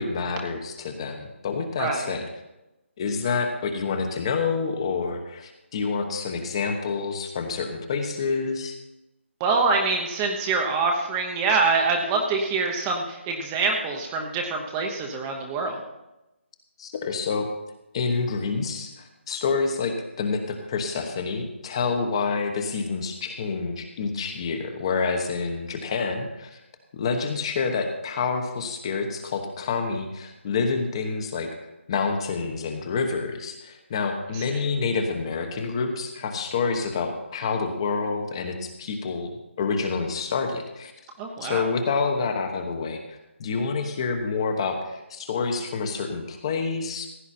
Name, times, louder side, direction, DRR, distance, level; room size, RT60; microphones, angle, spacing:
voice 1, 0.0-2.2 3.0-8.7 16.8-17.5 17.9-26.6 26.9-39.3 39.6-40.9 41.4-47.1, left 4 dB, 25° left, 5 dB, 1.1 m, -28 dB
voice 2, 9.4-15.8 34.3-34.6 41.2-41.7, right 4 dB, 10° right, 2 dB, 0.9 m, -25 dB
15.5 x 9.8 x 4.4 m, 0.96 s
figure-of-eight pair, 170°, 7 cm